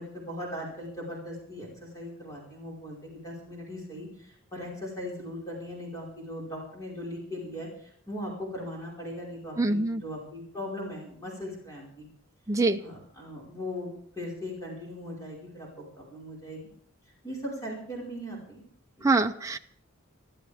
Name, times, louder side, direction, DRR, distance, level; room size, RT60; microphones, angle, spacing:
voice 1, 0.0-12.1 12.8-16.7 17.2-18.6 19.0-19.1, left 1 dB, 15° left, -4 dB, 5.2 m, -39 dB
voice 2, 9.6-10.0 12.5-12.8 19.0-19.6, right 3 dB, 15° right, 5 dB, 0.6 m, -24 dB
24.0 x 13.5 x 3.6 m, 0.64 s
head